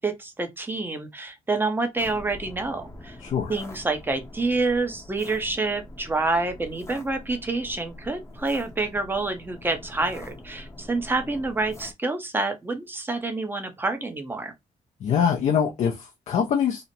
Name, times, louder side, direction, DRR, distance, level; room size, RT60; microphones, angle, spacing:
voice 1, 0.0-3.2 3.5-14.5, right 3 dB, 15° right, 0.7 m, -27 dB
sound 1, 2.0-11.9, left 1 dB, 20° left, 0.7 m, -44 dB
voice 2, 3.2-3.6 15.0-16.8, left 7 dB, 60° left, 0.5 m, -24 dB
2.8 x 2.1 x 2.6 m
cardioid pair, 105°, 14 cm